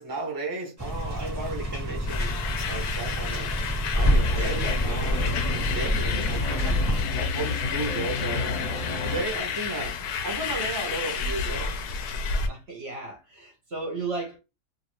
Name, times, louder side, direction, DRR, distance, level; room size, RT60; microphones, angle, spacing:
voice 1, 0.0-2.3 2.7-5.4 5.7-8.8 9.0-9.9 10.2-11.8, right 2 dB, 30° right, 0.4 m, -34 dB
sound 1, 0.8-7.0, equal, 10° right, 1.0 m, -27 dB
sound 2, 2.1-12.5, left 6 dB, 70° left, 1.0 m, -32 dB
sound 3, 4.1-9.2, left 3 dB, 40° left, 0.8 m, -31 dB
voice 2, 12.4-14.4, right 3 dB, 50° right, 0.8 m, -34 dB
2.9 x 2.6 x 3.0 m
omnidirectional pair, 1.9 m